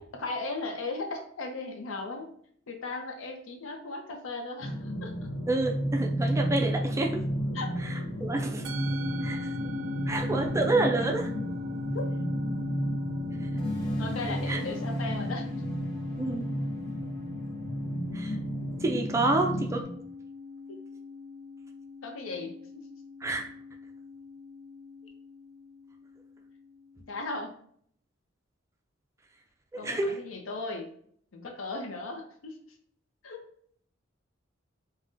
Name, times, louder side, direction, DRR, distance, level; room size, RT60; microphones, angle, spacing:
voice 1, 0.2-2.3 2.7-5.1 7.5-7.7 11.9-12.0 14.0-15.5 20.7-20.8 22.0-22.9 27.1-27.6 29.8-30.9 31.3-32.7 33.2-33.4, left 3 dB, 85° left, 3 dB, 0.6 m, -37 dB
sound 1, 4.6-19.8, equal, 40° left, 0.6 m, -32 dB
voice 2, 5.5-7.2 7.8-8.7 9.2-9.7 10.1-11.3 14.5-14.6 16.2-16.5 18.1-18.4 18.8-19.9 23.2-23.4 29.7-30.2, right 2 dB, 15° right, 2 dB, 0.3 m, -29 dB
Musical instrument, 8.6-27.1, left 3 dB, 85° right, 0.4 m, -41 dB
sound 2, 13.6-18.8, equal, 5° left, 0.8 m, -47 dB
3.5 x 2.2 x 2.5 m, 0.63 s
head